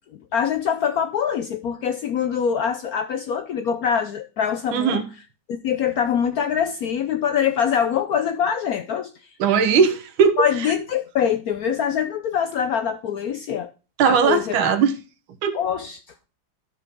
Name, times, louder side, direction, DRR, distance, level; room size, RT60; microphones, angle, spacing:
voice 1, 0.1-5.0 5.5-9.1 10.4-13.7 14.0-14.5 15.5-16.0, left 8 dB, 85° left, 0.8 m, -24 dB
voice 2, 4.7-5.0 9.4-10.5 14.0-14.9 15.4-15.6, right 6 dB, 75° right, 1.8 m, -18 dB
12.5 x 4.5 x 5.2 m
omnidirectional pair, 2.3 m